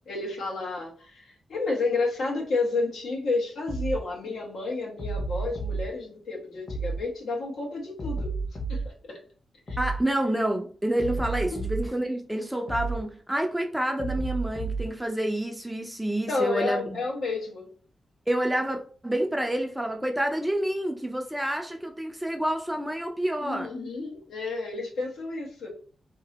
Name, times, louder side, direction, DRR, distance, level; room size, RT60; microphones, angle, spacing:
voice 1, 0.1-8.4 8.7-9.2 16.3-17.7 23.4-25.7, left 3 dB, 80° left, 1.3 m, -30 dB
sound 1, 3.7-4.0 5.0-5.8 6.7-7.0 8.0-8.9 9.7-10.0 11.0-11.9 12.7-13.0 14.0-14.9, right 3 dB, 45° left, 1.3 m, -31 dB
voice 2, 9.8-17.0 18.3-23.7, right 1 dB, 5° right, 0.5 m, -28 dB
2.9 x 2.6 x 4.0 m
wide cardioid pair, 115°, 0 cm